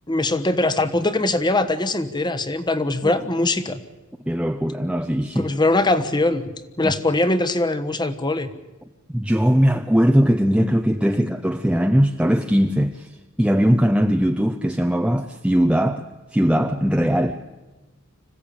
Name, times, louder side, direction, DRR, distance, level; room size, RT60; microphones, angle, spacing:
voice 1, 0.1-3.8 5.4-6.5 6.8-8.5, left 2 dB, 20° left, 1.2 m, -21 dB
voice 2, 4.3-5.5 6.8-6.9 9.1-13.1 13.4-16.0 16.3-17.4, equal, 5° right, 0.7 m, -20 dB
26.0 x 15.5 x 8.8 m
head